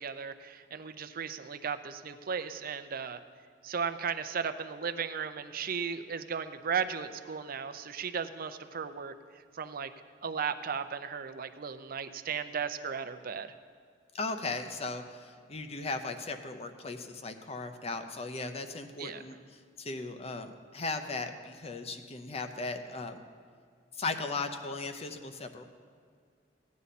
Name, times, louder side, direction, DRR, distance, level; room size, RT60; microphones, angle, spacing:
voice 1, 0.0-3.2 3.6-9.1 9.5-9.9 10.2-13.5 19.0-19.2, right 6 dB, 50° right, 11 dB, 0.6 m, -35 dB
voice 2, 14.1-23.2 23.9-25.6, left 3 dB, 35° left, 7 dB, 0.7 m, -37 dB
16.5 x 9.5 x 4.2 m, 2.1 s
head